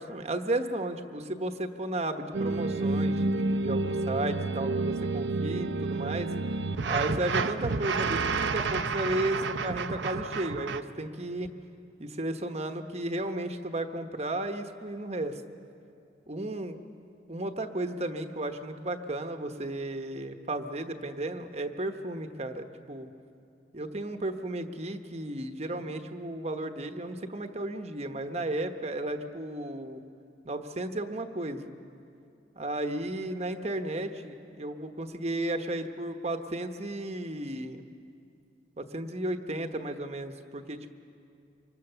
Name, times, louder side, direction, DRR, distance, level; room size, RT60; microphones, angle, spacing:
voice 1, 0.0-6.3 6.8-11.5 12.0-15.4 16.3-16.8 17.3-23.1 23.7-30.0 30.4-31.7 32.6-37.8 38.8-40.9, right 1 dB, 35° right, 7 dB, 1.1 m, -34 dB
sound 1, 2.3-10.8, right 3 dB, 70° right, 0.8 m, -30 dB
25.5 x 25.5 x 6.8 m, 2.6 s
head